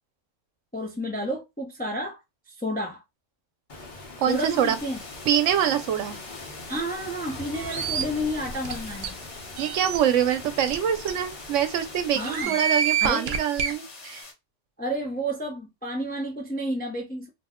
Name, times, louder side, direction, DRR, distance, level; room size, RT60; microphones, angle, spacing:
voice 1, 0.7-2.2 2.5-3.0 4.3-5.0 6.7-9.2 12.1-12.6 13.0-13.3 14.8-17.3, equal, 15° left, 0.4 m, -30 dB
Waves surf, 3.7-12.4, left 2 dB, 45° left, 0.9 m, -41 dB
voice 2, 4.2-4.8 5.3-6.1 9.6-14.2, right 9 dB, 80° right, 0.9 m, -24 dB
sound 1, 4.3-14.3, left 3 dB, 70° left, 1.2 m, -45 dB
sound 2, 7.5-8.0 8.6-8.7 9.0-9.1 9.6-10.0 10.7-10.8 11.1-11.2 12.2-13.7, right 7 dB, 60° right, 0.6 m, -27 dB
2.6 x 2.1 x 3.5 m
omnidirectional pair, 1.3 m